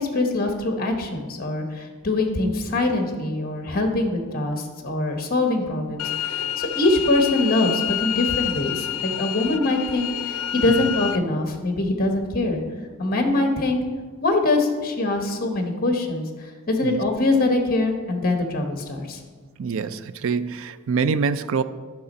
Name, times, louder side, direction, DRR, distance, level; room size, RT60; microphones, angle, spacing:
voice 1, 0.0-12.6 13.0-13.8 14.2-19.2, left 2 dB, 45° left, 4 dB, 1.0 m, -23 dB
sound 1, 6.0-11.2, left 11 dB, 85° left, 0.4 m, -28 dB
voice 2, 19.6-21.6, right 5 dB, 65° right, 14 dB, 0.4 m, -25 dB
9.4 x 6.0 x 4.2 m, 1.5 s
head